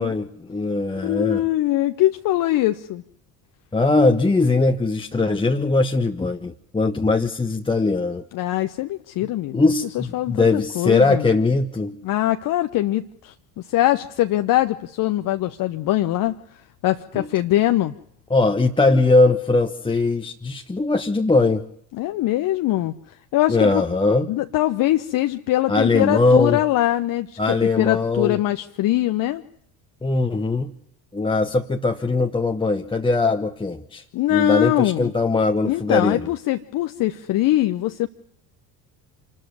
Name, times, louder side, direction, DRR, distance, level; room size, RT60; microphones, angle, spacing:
voice 1, 0.0-1.4 3.7-8.2 9.5-12.0 17.1-17.3 18.3-21.6 23.5-24.3 25.7-26.6 27.4-28.4 30.0-30.7 31.1-34.0 34.3-36.3, left 3 dB, 10° left, 4 dB, 1.2 m, -20 dB
voice 2, 1.0-3.0 8.3-9.6 9.9-11.3 12.0-16.4 16.8-17.9 21.9-23.8 24.3-29.4 34.1-35.1 35.7-38.1, left 15 dB, 45° left, 8 dB, 1.0 m, -22 dB
27.0 x 13.0 x 9.5 m, 0.70 s
figure-of-eight pair, 60°, 48 cm